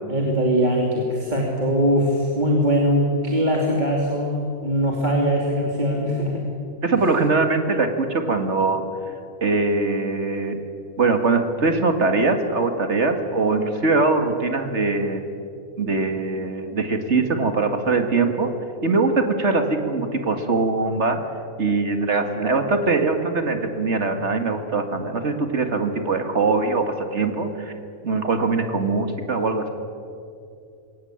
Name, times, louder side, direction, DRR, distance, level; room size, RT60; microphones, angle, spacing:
voice 1, 0.1-6.5 6.9-7.0, equal, 30° right, -2 dB, 2.8 m, -21 dB
voice 2, 6.8-8.8 9.4-10.6 11.0-15.2 15.8-18.5 18.8-21.2 21.6-27.7 28.0-29.7, right 3 dB, 50° right, 6 dB, 2.1 m, -22 dB
21.5 x 18.5 x 8.8 m, 2.5 s
omnidirectional pair, 1.6 m